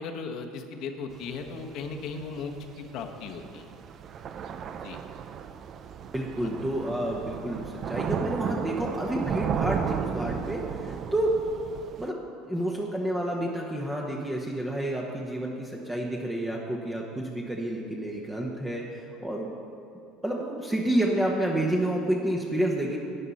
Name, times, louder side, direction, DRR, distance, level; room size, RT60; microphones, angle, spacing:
voice 1, 0.0-3.7 4.7-5.0 6.4-6.5, left 4 dB, 65° left, 4 dB, 1.1 m, -37 dB
Thunder / Rain, 1.1-12.1, right 7 dB, 45° right, 0.5 m, -34 dB
voice 2, 6.1-11.4 12.0-12.2 12.5-19.5 20.2-23.0, right 1 dB, 10° right, -2 dB, 1.1 m, -29 dB
12.0 x 9.2 x 4.2 m, 2.7 s
supercardioid pair, 95°, 0 cm